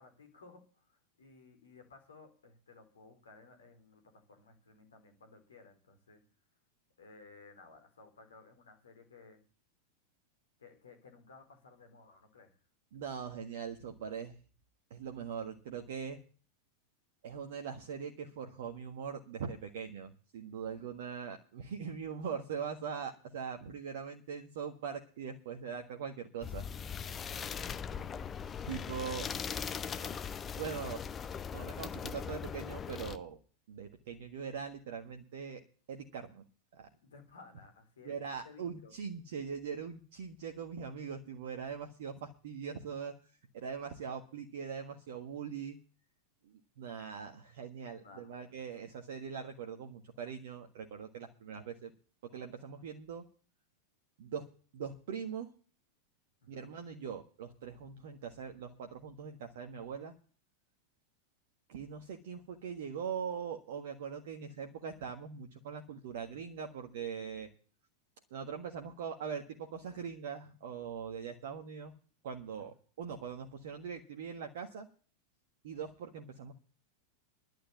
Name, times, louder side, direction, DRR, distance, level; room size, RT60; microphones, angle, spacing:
voice 1, 0.0-6.2 7.0-9.4 10.6-12.6 22.2-22.4 27.2-28.2 29.1-29.2 29.9-30.2 37.0-38.9 47.9-48.6 56.4-56.7 72.6-72.7, left 4 dB, 70° left, 5 dB, 4.3 m, -57 dB
voice 2, 12.9-14.4 14.9-16.2 17.2-26.6 28.7-29.2 30.6-31.0 31.5-33.4 33.7-35.6 35.9-36.4 36.7-36.9 38.0-43.1 43.5-45.8 46.4-51.9 52.3-53.2 54.2-54.5 54.7-55.5 56.5-60.1 61.7-67.5 68.3-71.9 72.2-74.9 75.6-76.5, right 6 dB, 55° right, 4 dB, 1.5 m, -41 dB
sound 1, 26.4-33.2, left 7 dB, 20° left, 1.0 m, -40 dB
11.5 x 10.0 x 7.2 m, 0.40 s
figure-of-eight pair, 90°, 0 cm